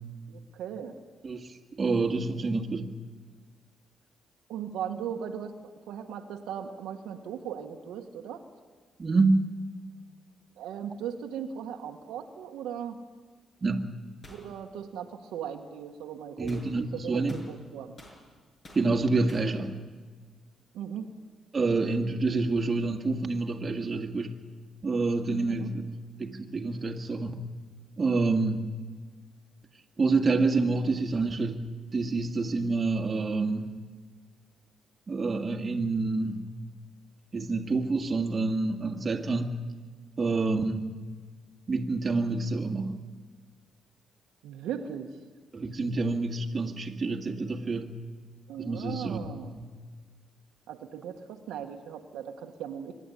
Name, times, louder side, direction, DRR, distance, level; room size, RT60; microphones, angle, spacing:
voice 1, 0.3-1.0 4.5-5.6 5.9-8.4 10.6-13.0 14.3-18.0 20.7-21.1 25.4-25.7 44.4-45.1 48.5-49.5 50.7-53.0, right 8 dB, 85° right, 4 dB, 1.5 m, -38 dB
voice 2, 1.8-2.9 9.0-9.5 13.6-13.9 16.4-17.4 18.7-19.8 21.5-24.3 24.8-25.8 26.2-27.4 28.0-28.6 30.0-31.6 31.9-33.7 35.1-36.4 37.3-39.5 40.2-40.9 41.7-43.0 45.5-47.9 48.6-49.2 49.6-49.7, right 3 dB, 35° right, 4 dB, 1.9 m, -27 dB
sound 1, 14.2-14.5 16.5-16.7 17.3-18.2 18.6-18.9 19.3-19.5, left 1 dB, 35° left, 6.7 m, -49 dB
24.5 x 11.0 x 9.9 m, 1.5 s
cardioid pair, 90°, 0 cm